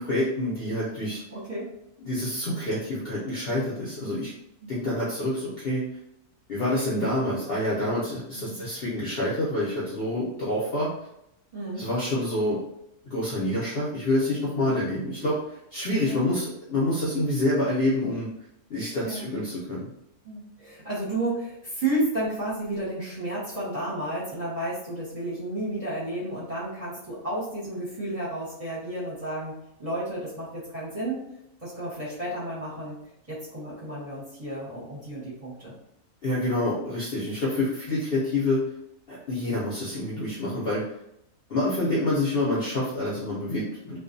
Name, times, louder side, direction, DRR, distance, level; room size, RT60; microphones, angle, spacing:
voice 1, 0.0-1.2 2.1-4.3 4.7-5.8 6.5-10.9 11.8-12.6 13.1-18.3 18.7-19.9 36.2-38.6 39.1-40.8 41.5-44.0, left 1 dB, 55° left, -7 dB, 0.7 m, -27 dB
voice 2, 1.3-1.7 4.0-4.3 4.6-4.7 8.3-8.6 11.5-11.9 14.7-14.9 15.9-16.2 19.0-19.3 20.2-31.2 31.6-33.0 33.3-35.7, right 1 dB, 30° right, -9 dB, 0.8 m, -32 dB
2.4 x 2.2 x 2.5 m, 0.80 s
omnidirectional pair, 1.6 m